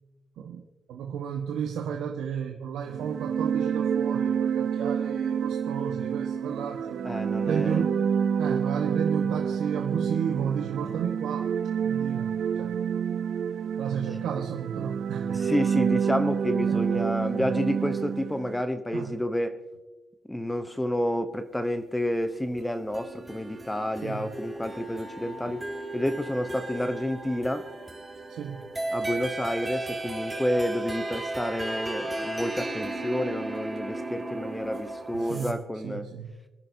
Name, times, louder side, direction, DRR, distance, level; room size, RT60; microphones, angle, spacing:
voice 1, 0.9-7.0 7.4-8.0 8.4-11.5 11.8-12.7 13.8-15.5 16.7-17.1 17.4-17.5 18.9-19.2 24.0-24.3 28.3-28.7 35.1-35.6 35.8-36.3, right 7 dB, 80° right, 2 dB, 1.3 m, -33 dB
sound 1, 2.9-18.6, right 7 dB, 60° right, 0.5 m, -28 dB
voice 2, 7.0-7.8 15.3-19.6 20.3-25.6 25.9-27.7 28.9-36.1, left 1 dB, 10° left, 9 dB, 0.8 m, -30 dB
sound 2, 22.6-35.5, right 2 dB, 15° right, 2.8 m, -35 dB
26.0 x 10.5 x 2.7 m, 1.1 s
cardioid pair, 90°, 0 cm